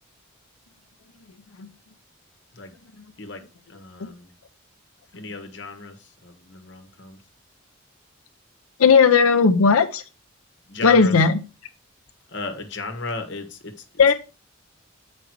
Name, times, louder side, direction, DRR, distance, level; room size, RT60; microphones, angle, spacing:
voice 1, 3.2-4.3 5.1-7.2 10.7-11.1 12.3-14.1, left 3 dB, 55° left, 5 dB, 1.5 m, -35 dB
voice 2, 8.8-10.0 10.8-11.4 14.0-14.1, left 5 dB, 85° left, 6 dB, 0.6 m, -16 dB
8.1 x 5.2 x 4.6 m, 0.32 s
head